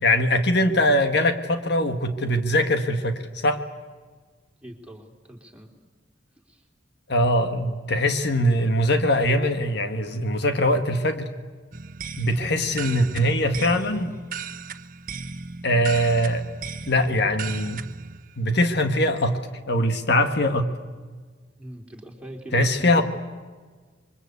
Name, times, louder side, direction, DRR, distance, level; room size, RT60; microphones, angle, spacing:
voice 1, 0.0-3.6 7.1-11.3 12.2-14.2 15.6-16.4 16.9-17.8 18.4-19.4 19.7-20.7 22.5-23.0, left 1 dB, 65° left, 7 dB, 1.6 m, -22 dB
voice 2, 4.6-5.7 6.5-6.6 21.6-23.0, right 1 dB, 5° right, 0 dB, 3.5 m, -42 dB
sound 1, 11.7-18.2, right 5 dB, 50° right, 1.0 m, -36 dB
27.0 x 23.5 x 8.3 m, 1.4 s
head